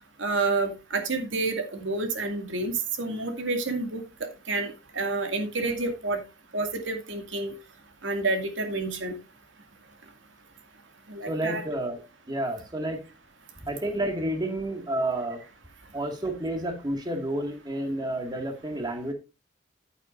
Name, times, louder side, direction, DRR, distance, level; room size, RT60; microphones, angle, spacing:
voice 1, 0.2-4.0 4.5-6.2 6.5-7.5 8.0-9.1 11.1-11.6, right 3 dB, 80° right, 6 dB, 2.4 m, -29 dB
voice 2, 11.3-12.0 12.3-13.1 13.6-15.5 15.9-19.1, right 1 dB, 20° right, 4 dB, 2.0 m, -30 dB
11.0 x 9.6 x 2.6 m, 0.25 s
head